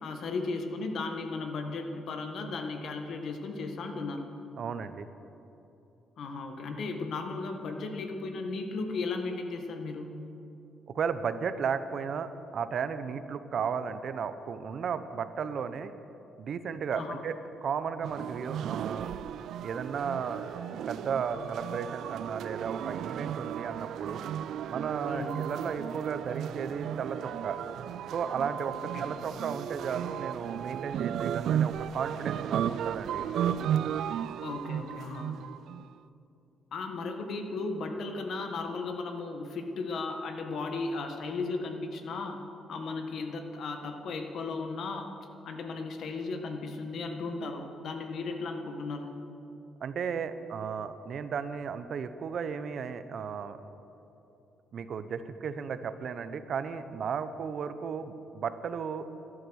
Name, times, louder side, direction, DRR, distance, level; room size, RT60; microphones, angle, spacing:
voice 1, 0.0-4.3 6.2-10.1 16.9-17.2 25.1-25.4 28.9-29.1 34.4-35.3 36.7-42.4 42.7-45.1 45.4-49.1, left 3 dB, 65° left, 5 dB, 1.5 m, -35 dB
voice 2, 4.6-5.1 10.9-15.9 16.4-17.4 17.6-19.1 19.6-20.6 20.9-24.2 24.7-27.6 28.1-33.6 49.8-53.6 54.7-59.1, right 6 dB, 60° right, 11 dB, 0.7 m, -34 dB
sound 1, 18.0-35.9, right 9 dB, 75° right, 0.3 m, -34 dB
13.0 x 11.5 x 6.4 m, 2.9 s
cardioid pair, 90°, 0 cm